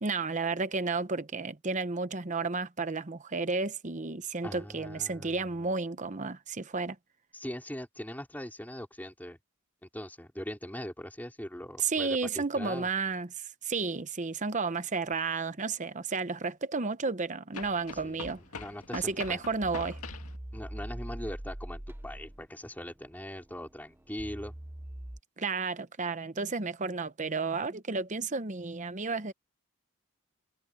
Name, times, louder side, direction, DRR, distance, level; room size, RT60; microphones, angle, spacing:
voice 1, 0.0-7.0 11.8-18.4 18.9-20.0 25.4-29.3, right 4 dB, 35° right, 0.9 m, -32 dB
voice 2, 4.4-5.7 7.3-9.4 9.8-12.9 18.0-19.4 20.5-24.5, equal, 10° left, 3.8 m, -41 dB
sound 1, 15.1-15.2 17.5-20.4, left 4 dB, 85° left, 2.0 m, -43 dB
sound 2, 18.4-19.0 19.6-22.5 22.8-25.2, right 1 dB, 10° right, 0.7 m, -42 dB
head